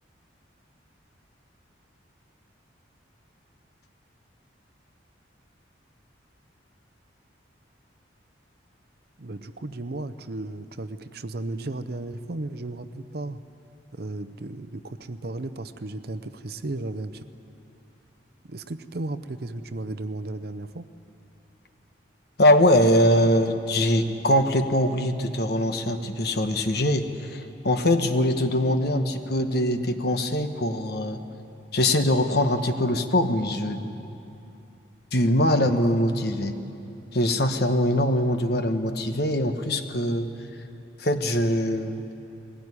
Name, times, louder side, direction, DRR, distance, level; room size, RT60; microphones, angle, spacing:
voice 1, 9.2-13.4 13.9-17.2 18.5-20.9 35.6-35.9, right 2 dB, 55° right, 11 dB, 0.7 m, -34 dB
voice 2, 22.4-31.2 31.7-33.9 35.1-36.6 37.1-40.3 41.0-42.0, left 1 dB, 55° left, 7 dB, 1.2 m, -22 dB
21.0 x 16.5 x 9.8 m, 2.7 s
head